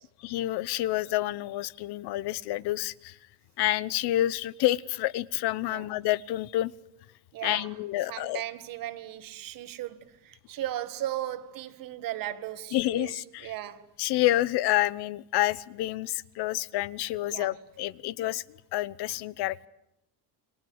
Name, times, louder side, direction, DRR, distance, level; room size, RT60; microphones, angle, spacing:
voice 1, 0.2-3.1 3.6-6.7 7.4-8.4 12.7-13.5 14.0-18.4 18.7-19.7, left 15 dB, 70° left, 1.0 m, -28 dB
voice 2, 7.3-7.7 8.1-13.8 17.3-17.5, right 13 dB, 55° right, 2.0 m, -36 dB
29.5 x 23.0 x 8.0 m
cardioid pair, 175°, 40 cm